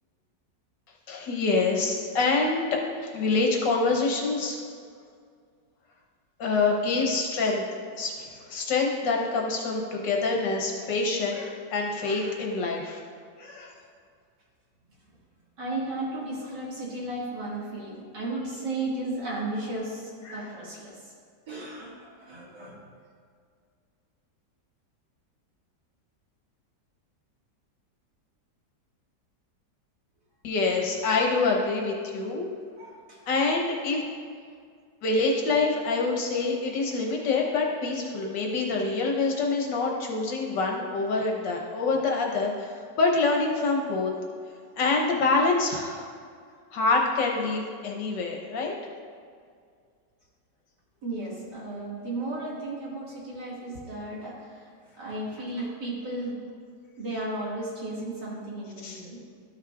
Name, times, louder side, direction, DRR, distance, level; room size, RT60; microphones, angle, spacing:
voice 1, 1.1-4.6 6.4-7.6 8.0-13.0 13.4-13.7 20.3-20.5 30.4-32.5 33.3-34.1 35.0-44.1 44.8-46.0 46.7-48.7 58.8-59.0, left 3 dB, 80° left, 0 dB, 1.8 m, -26 dB
voice 2, 15.6-20.9 21.5-22.8 32.8-33.2 51.0-54.6 55.0-56.4 57.0-59.2, right 2 dB, 70° right, -6 dB, 2.8 m, -34 dB
12.5 x 6.5 x 2.5 m, 2.1 s
omnidirectional pair, 1.9 m